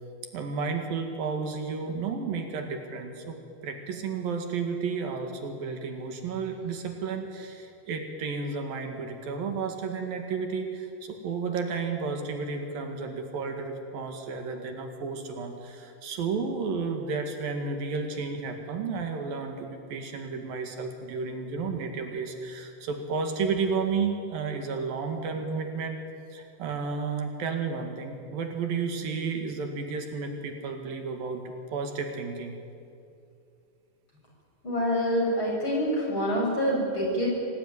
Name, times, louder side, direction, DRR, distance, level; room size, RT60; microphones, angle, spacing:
voice 1, 0.3-3.4 3.6-26.0 26.3-31.4 31.7-32.5, right 5 dB, 70° right, 4 dB, 3.6 m, -32 dB
voice 2, 34.6-37.3, equal, 30° left, -3 dB, 7.4 m, -26 dB
26.0 x 18.5 x 9.7 m, 2.5 s
omnidirectional pair, 4.3 m